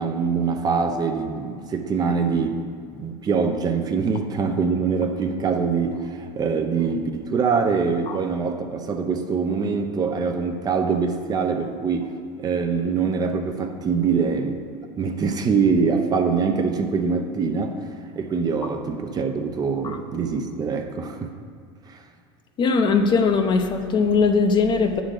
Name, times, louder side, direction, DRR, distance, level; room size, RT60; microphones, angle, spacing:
voice 1, 0.0-2.6 2.9-12.1 12.4-14.7 15.0-21.3 21.9-22.0, right 5 dB, 30° right, 5 dB, 0.6 m, -24 dB
voice 2, 22.6-25.0, left 4 dB, 35° left, 6 dB, 0.6 m, -20 dB
8.5 x 3.8 x 6.5 m, 2.3 s
supercardioid pair, 120°, 14 cm